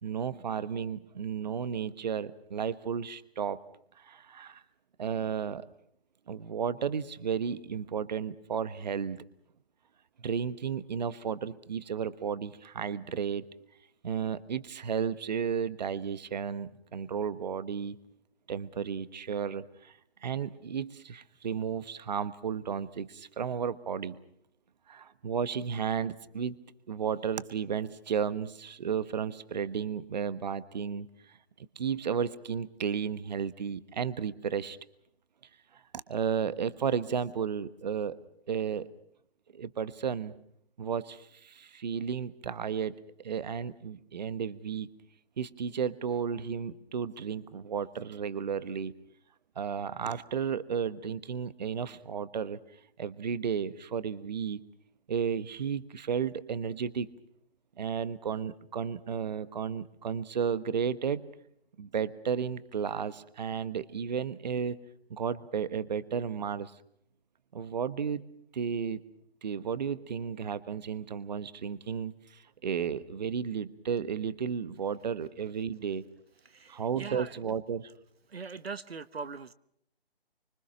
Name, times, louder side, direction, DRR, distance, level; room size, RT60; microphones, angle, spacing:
voice 1, 0.0-3.6 4.0-4.6 5.0-5.7 6.3-9.2 10.2-13.4 14.0-18.0 18.5-19.9 20.2-24.2 24.9-26.6 26.9-34.8 35.7-38.2 38.5-38.9 39.5-40.3 40.8-44.9 45.4-48.9 49.5-52.6 53.0-54.6 55.1-57.1 57.8-61.2 61.8-64.8 65.1-66.7 67.5-68.2 68.5-69.0 69.4-76.0 76.7-77.9, right 7 dB, 45° right, 15 dB, 1.2 m, -33 dB
voice 2, 76.4-77.4 78.3-79.5, right 5 dB, 75° right, 14 dB, 1.2 m, -41 dB
26.0 x 25.5 x 6.2 m, 0.69 s
figure-of-eight pair, 155°, 31 cm